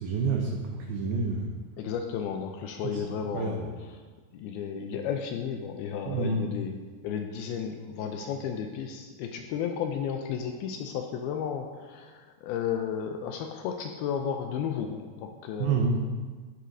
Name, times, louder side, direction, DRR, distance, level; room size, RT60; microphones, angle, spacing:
voice 1, 0.0-1.5 3.1-3.7 6.1-6.4 15.6-16.0, right 4 dB, 75° right, 0 dB, 2.5 m, -28 dB
voice 2, 1.8-3.6 4.3-15.9, left 7 dB, 80° left, 4 dB, 2.3 m, -33 dB
11.5 x 9.4 x 2.7 m, 1.4 s
omnidirectional pair, 4.8 m